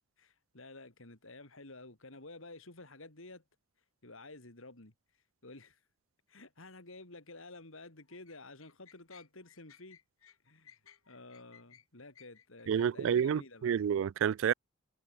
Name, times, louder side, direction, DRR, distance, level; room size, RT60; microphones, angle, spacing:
voice 1, 0.2-3.4 4.0-4.9 5.4-5.8 6.3-10.0 10.4-10.8 11.1-13.9, left 2 dB, 75° left, 3.4 m, -51 dB
sound 1, 7.8-12.8, left 9 dB, 90° left, 2.6 m, -61 dB
voice 2, 12.7-14.5, right 8 dB, 65° right, 0.3 m, -29 dB
head